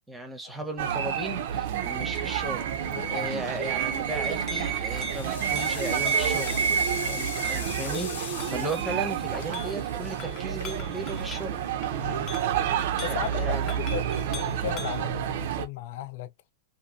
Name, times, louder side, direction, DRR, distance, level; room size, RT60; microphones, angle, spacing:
voice 1, 0.1-2.7 3.1-6.6 7.1-11.6 13.1-13.7, right 1 dB, 5° right, 0.7 m, -36 dB
sound 1, 0.8-15.7, right 9 dB, 60° right, 0.5 m, -29 dB
voice 2, 2.9-3.4 7.0-7.2 12.0-12.6 13.0-16.3, left 11 dB, 55° left, 0.3 m, -37 dB
Chink clink, 3.8-15.1, left 6 dB, 30° left, 0.7 m, -45 dB
sound 2, 3.9-4.3 4.8-11.1, left 7 dB, 80° left, 0.8 m, -40 dB
2.7 x 2.6 x 2.4 m
supercardioid pair, 155°, 0 cm